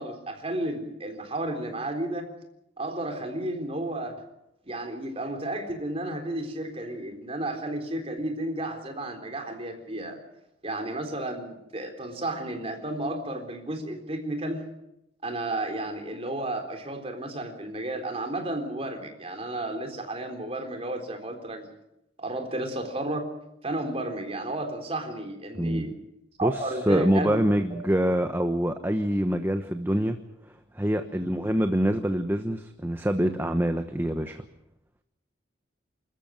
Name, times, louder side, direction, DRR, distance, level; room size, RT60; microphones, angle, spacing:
voice 1, 0.0-2.3 2.8-4.3 4.7-10.2 10.6-14.6 15.2-21.7 22.2-23.3 23.6-26.0 26.4-27.4, right 1 dB, 30° right, 4 dB, 3.8 m, -32 dB
voice 2, 25.6-25.9 26.4-30.2 30.7-34.4, equal, 10° right, 7 dB, 1.0 m, -25 dB
28.0 x 14.0 x 9.0 m, 0.85 s
head